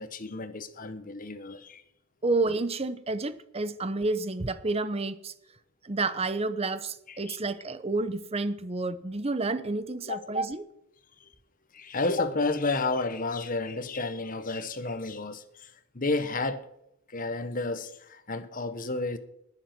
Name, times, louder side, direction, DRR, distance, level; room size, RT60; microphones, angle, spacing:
voice 1, 0.0-1.8 7.1-7.4 10.1-10.2 11.2-11.3 11.7-16.6 17.1-19.2, left 3 dB, 40° left, 1.3 m, -31 dB
voice 2, 2.2-5.3 5.8-10.6, right 3 dB, 25° right, 0.8 m, -30 dB
19.5 x 7.5 x 6.1 m
head